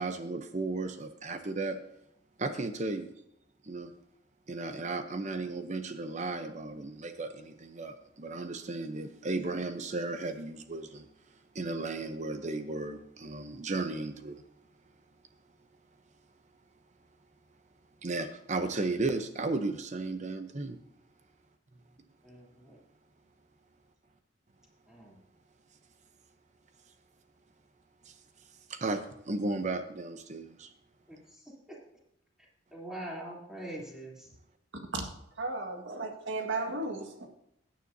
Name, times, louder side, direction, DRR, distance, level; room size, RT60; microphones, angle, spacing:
voice 1, 0.0-1.8 2.4-3.1 3.6-3.9 4.5-11.1 11.5-14.4 18.0-20.8 28.1-28.2 28.7-30.7, right 3 dB, 40° right, 8 dB, 0.8 m, -35 dB
voice 2, 22.2-22.8 24.9-25.2 31.1-31.2 32.7-34.3, right 1 dB, 5° right, -4 dB, 3.2 m, -43 dB
voice 3, 35.4-37.3, right 2 dB, 70° right, 4 dB, 1.8 m, -34 dB
16.5 x 9.4 x 2.7 m, 0.78 s
head